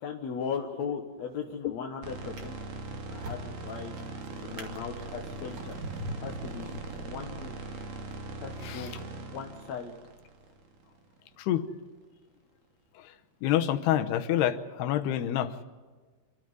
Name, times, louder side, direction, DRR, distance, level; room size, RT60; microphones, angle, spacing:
voice 1, 0.0-2.5 3.1-3.9 4.4-5.7 6.2-7.5 8.4-8.9 9.2-9.9, left 6 dB, 60° left, 1 dB, 2.0 m, -38 dB
Drawer open or close, 1.2-1.6 2.2-7.4 8.1-8.2, right 1 dB, 45° right, 2.7 m, -43 dB
sound 1, 2.0-11.2, right 2 dB, 60° right, 3.5 m, -41 dB
voice 2, 13.4-15.5, left 11 dB, 85° left, 8 dB, 3.0 m, -27 dB
26.5 x 13.0 x 9.7 m, 1.4 s
omnidirectional pair, 4.6 m